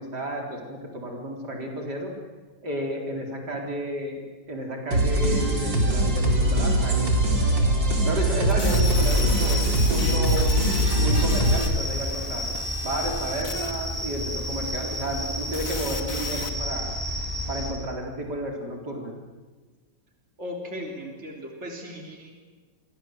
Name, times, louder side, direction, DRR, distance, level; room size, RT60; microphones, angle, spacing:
voice 1, 0.0-2.1 2.6-4.2 4.5-7.1 8.0-10.5 10.9-12.5 12.8-16.9 17.5-19.1, right 1 dB, 65° right, 1 dB, 4.6 m, -32 dB
sound 1, 4.9-11.6, right 1 dB, 80° right, 4.9 m, -22 dB
sound 2, 8.5-16.5, left 5 dB, 50° left, 2.1 m, -38 dB
sound 3, 8.7-17.7, equal, ahead, 7.1 m, -31 dB
voice 2, 20.4-22.3, left 1 dB, 35° right, 1 dB, 3.8 m, -37 dB
29.5 x 23.5 x 7.8 m, 1.3 s
omnidirectional pair, 2.0 m